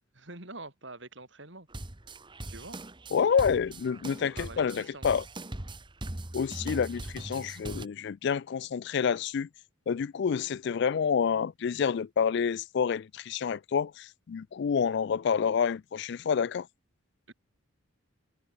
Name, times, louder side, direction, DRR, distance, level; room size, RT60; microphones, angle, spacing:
voice 1, 0.1-1.7 2.5-2.8 4.2-5.2 17.3-17.4, right 2 dB, 60° right, 4.2 m, -45 dB
sound 1, 1.7-7.9, right 1 dB, 25° right, 1.3 m, -40 dB
voice 2, 3.1-5.2 6.3-9.5 9.9-16.7, left 6 dB, 55° left, 0.3 m, -28 dB
head